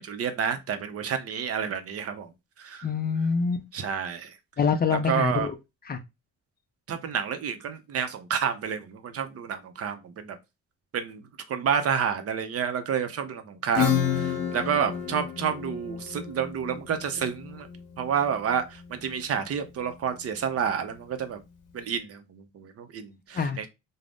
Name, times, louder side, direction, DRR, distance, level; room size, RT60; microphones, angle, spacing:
voice 1, 0.0-2.3 2.6-2.9 3.7-4.3 4.9-5.5 6.9-10.4 10.9-11.2 11.5-17.7 18.0-21.4 21.7-23.7, right 7 dB, 50° right, 0.5 m, -29 dB
voice 2, 2.8-3.6 4.6-5.5 5.9-6.0 23.3-23.6, left 5 dB, 30° left, 0.4 m, -25 dB
Acoustic guitar / Strum, 13.8-19.1, left 8 dB, 85° left, 0.6 m, -30 dB
2.5 x 2.0 x 3.3 m
cardioid pair, 90°, 30 cm